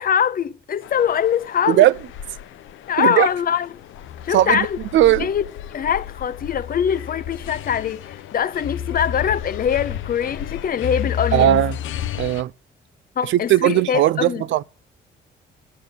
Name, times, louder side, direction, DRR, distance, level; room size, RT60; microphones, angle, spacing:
voice 1, 0.0-1.8 2.9-3.7 4.2-4.8 5.2-5.4 5.7-11.6 13.2-14.4, left 8 dB, 45° left, 0.7 m, -23 dB
sound 1, 0.8-12.4, left 9 dB, 80° left, 0.6 m, -32 dB
voice 2, 3.0-3.3 4.3-4.7 4.9-5.3 11.3-11.8 12.1-12.5 13.2-14.6, right 13 dB, 75° right, 0.5 m, -17 dB
9.6 x 7.3 x 8.1 m
cardioid pair, 90°, 20 cm